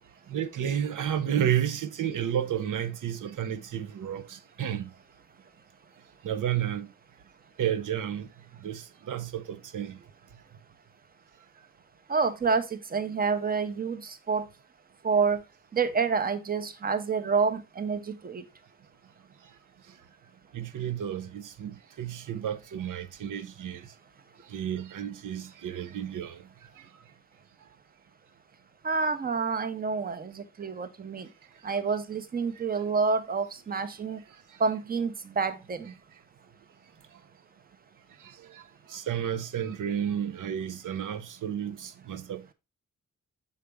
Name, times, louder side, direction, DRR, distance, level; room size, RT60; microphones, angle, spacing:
voice 1, 0.3-4.9 6.2-6.9 7.6-8.3 8.6-10.0 20.5-23.9 24.5-26.4 38.2-38.6 38.9-42.5, right 9 dB, 85° right, 0.7 m, -31 dB
voice 2, 12.1-14.5 15.0-15.4 15.7-18.4 28.8-31.3 31.6-34.2 34.6-35.9, right 5 dB, 30° right, 0.7 m, -28 dB
6.9 x 5.0 x 3.3 m
wide cardioid pair, 150°, 30 cm